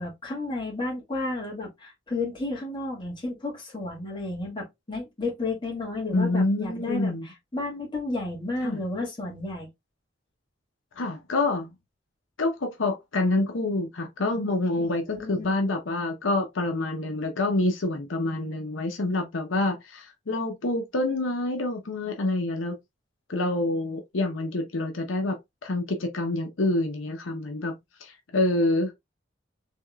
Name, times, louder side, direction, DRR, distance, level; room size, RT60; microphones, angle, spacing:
voice 1, 0.0-7.1 7.5-9.7 14.8-15.5, left 2 dB, 25° left, 1.7 m, -32 dB
voice 2, 6.1-7.3 8.6-8.8 11.0-11.7 12.4-22.8 23.3-27.8 28.0-28.9, left 2 dB, 85° left, 0.8 m, -27 dB
3.6 x 3.5 x 2.3 m
head